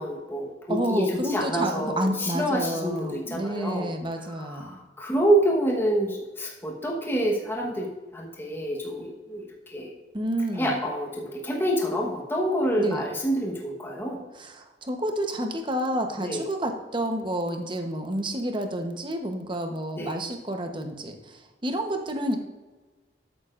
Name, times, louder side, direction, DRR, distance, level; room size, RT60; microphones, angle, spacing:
voice 1, 0.0-3.9 4.2-9.9 10.5-14.2 16.2-16.4 19.9-20.2, right 1 dB, 15° left, -2 dB, 1.2 m, -27 dB
voice 2, 0.7-4.8 10.1-10.7 12.8-13.0 14.4-22.4, right 1 dB, 30° right, 5 dB, 1.0 m, -29 dB
12.5 x 8.9 x 2.5 m, 1.2 s
head